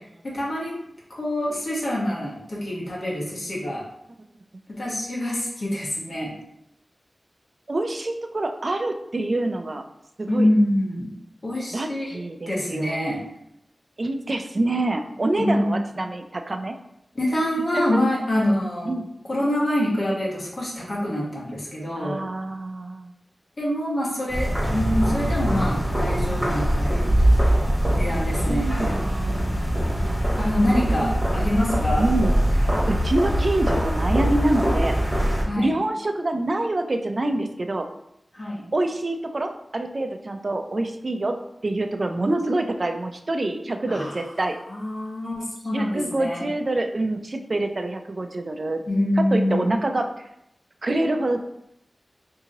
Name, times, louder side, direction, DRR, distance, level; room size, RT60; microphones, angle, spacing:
voice 1, 0.2-0.7 1.1-3.8 4.8-6.3 10.3-11.1 11.4-12.2 12.5-13.2 15.4-15.8 17.1-18.9 19.3-22.2 23.6-27.1 27.9-28.7 30.4-32.1 35.4-35.7 38.3-38.6 43.8-44.2 44.7-46.4 48.9-49.7, left 1 dB, 55° left, -6 dB, 1.0 m, -25 dB
voice 2, 7.7-9.8 10.2-10.5 11.7-13.1 14.0-16.7 17.7-18.0 18.9-19.1 22.0-23.1 24.7-25.1 28.4-30.2 31.0-31.1 32.0-37.9 38.7-44.6 45.7-48.8 49.3-50.1 50.8-51.4, right 2 dB, 45° right, 6 dB, 0.4 m, -26 dB
sound 1, 24.3-35.4, equal, 10° right, 1.1 m, -22 dB
2.9 x 2.7 x 3.7 m, 0.80 s
wide cardioid pair, 80°, 0 cm